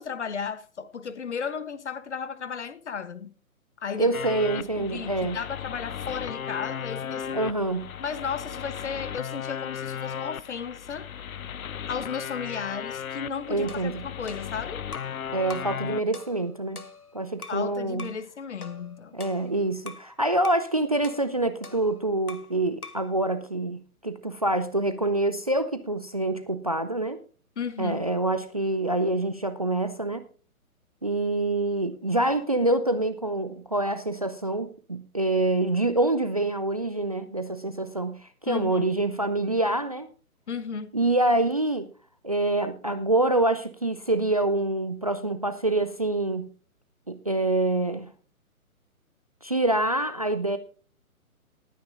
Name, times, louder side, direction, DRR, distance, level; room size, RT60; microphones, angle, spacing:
voice 1, 0.0-3.3 3.8-4.1 4.5-7.4 8.0-11.1 11.9-14.8 17.5-19.1 27.6-28.0 38.5-38.9 40.5-40.9, left 6 dB, 50° left, 1.1 m, -34 dB
voice 2, 4.0-5.4 7.3-7.9 13.5-14.0 15.3-16.8 17.1-18.1 19.1-27.2 27.8-30.2 31.0-40.1 40.9-41.9 42.2-46.5 47.1-48.1 49.4-50.6, right 2 dB, 25° right, 0.4 m, -26 dB
sound 1, 4.1-16.0, left 8 dB, 70° left, 0.6 m, -36 dB
sound 2, 13.7-15.2 15.5-15.8 16.1-17.7 18.0-18.2 18.6-20.1 20.4-20.7 21.0-22.6 22.8-23.1, left 4 dB, 90° left, 1.3 m, -44 dB
19.5 x 9.3 x 2.5 m
figure-of-eight pair, 135°, 44 cm